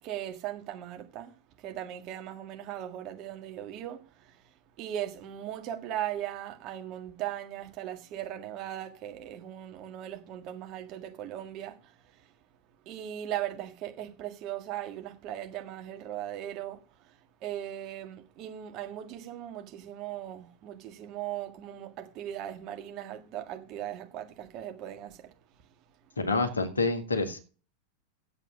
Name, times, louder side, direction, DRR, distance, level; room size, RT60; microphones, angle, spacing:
voice 1, 0.0-4.4 4.8-12.3 12.8-17.2 17.4-25.3, right 11 dB, 40° right, 1.8 m, -38 dB
voice 2, 26.2-27.4, left 3 dB, 75° left, 1.8 m, -27 dB
8.2 x 7.9 x 6.1 m
figure-of-eight pair, 90°, 0 cm